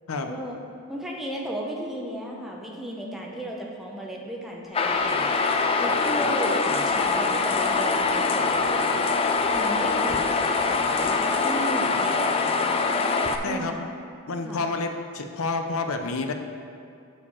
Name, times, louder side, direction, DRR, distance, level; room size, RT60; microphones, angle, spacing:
voice 1, 0.3-0.6 0.9-5.3 5.8-9.0 9.5-12.8 13.4-13.8 14.4-14.7, right 1 dB, ahead, -2 dB, 0.7 m, -34 dB
sound 1, 4.7-13.4, left 4 dB, 25° left, 0.3 m, -24 dB
sound 2, 4.8-11.7, right 2 dB, 75° right, 0.8 m, -45 dB
voice 2, 13.4-13.7 14.3-16.3, left 3 dB, 70° left, 5 dB, 0.6 m, -29 dB
6.6 x 4.8 x 5.6 m, 2.5 s
head